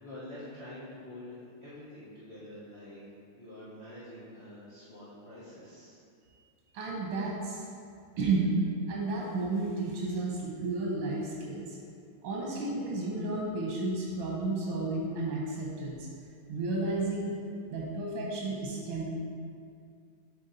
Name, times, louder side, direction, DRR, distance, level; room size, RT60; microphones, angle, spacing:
voice 1, 0.0-6.0, left 1 dB, 40° left, -11 dB, 1.1 m, -47 dB
voice 2, 6.7-7.6 8.2-8.5 8.9-11.8 12.2-16.1 16.5-17.3 17.7-19.1, right 3 dB, 90° right, -3 dB, 1.8 m, -32 dB
7.0 x 4.2 x 4.0 m, 2.3 s
omnidirectional pair, 2.2 m